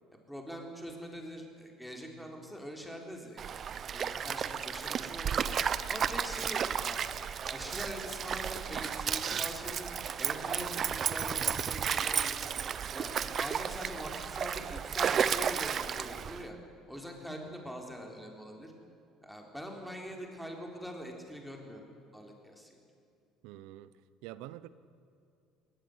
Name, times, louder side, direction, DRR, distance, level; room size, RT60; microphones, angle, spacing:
voice 1, 0.3-7.0 7.5-9.9 10.2-12.5 12.9-16.6 16.9-18.7 19.2-21.8 22.1-22.8, equal, ahead, 1 dB, 3.9 m, -43 dB
Stream, 3.4-16.5, right 7 dB, 40° right, 0.9 m, -33 dB
voice 2, 23.4-23.9 24.2-24.7, right 14 dB, 85° right, 16 dB, 0.9 m, -46 dB
20.5 x 19.0 x 9.7 m, 2.5 s
cardioid pair, 130°, 0 cm